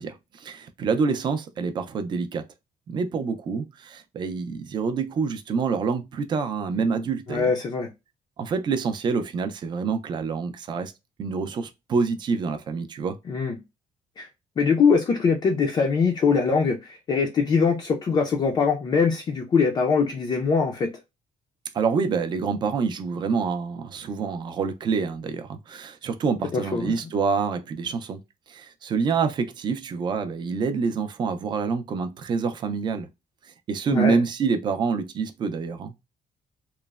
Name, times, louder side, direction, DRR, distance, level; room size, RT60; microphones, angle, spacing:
voice 1, 0.0-2.4 2.9-7.5 8.4-10.9 11.2-13.2 21.7-28.2 28.5-33.1 33.7-35.9, right 5 dB, 35° right, 0.4 m, -27 dB
voice 2, 7.3-7.9 13.3-13.5 14.2-14.3 14.6-20.9 26.5-26.9 33.9-34.2, left 5 dB, 30° left, 0.4 m, -22 dB
3.0 x 2.0 x 2.3 m
cardioid pair, 165°, 13 cm